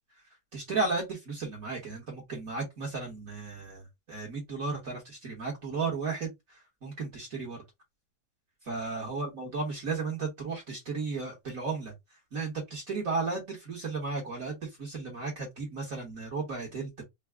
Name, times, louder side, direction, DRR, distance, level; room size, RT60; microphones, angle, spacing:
voice 1, 0.5-7.6 8.6-11.9 12.3-17.0, right 4 dB, 55° right, 0.9 m, -34 dB
4.6 x 2.1 x 3.3 m
omnidirectional pair, 3.3 m